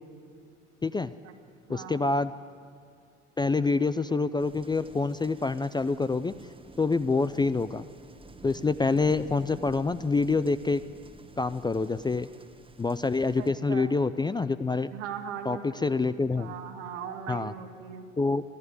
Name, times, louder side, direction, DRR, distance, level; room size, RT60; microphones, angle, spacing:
voice 1, 0.8-1.1 1.7-2.3 3.4-6.3 6.8-7.9 8.4-10.8 11.4-12.3 12.8-14.9 15.5-16.5 17.3-17.5 18.2-18.4, left 3 dB, 10° left, 13 dB, 0.4 m, -26 dB
voice 2, 1.7-2.0 13.4-13.9 14.9-15.6 16.3-18.1, right 8 dB, 75° right, 4 dB, 2.0 m, -39 dB
sound 1, 4.4-13.5, right 2 dB, 15° right, 1.3 m, -50 dB
21.0 x 13.0 x 9.4 m, 2.4 s
hypercardioid pair, 65°, 35 cm